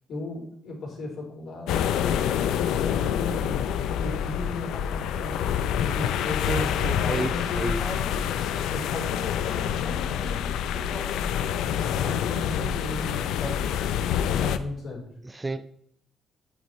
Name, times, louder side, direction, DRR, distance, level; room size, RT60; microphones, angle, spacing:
voice 1, 0.1-1.9 2.7-5.4 5.8-6.5 6.9-13.8 14.3-15.1, left 2 dB, 70° left, 3.9 m, -36 dB
sound 1, 1.7-14.6, left 9 dB, 90° left, 0.5 m, -27 dB
voice 2, 6.4-7.8 8.4-8.5 10.1-10.2 15.2-15.8, right 2 dB, 20° right, 0.5 m, -31 dB
8.7 x 8.5 x 3.1 m
cardioid pair, 95°, 0 cm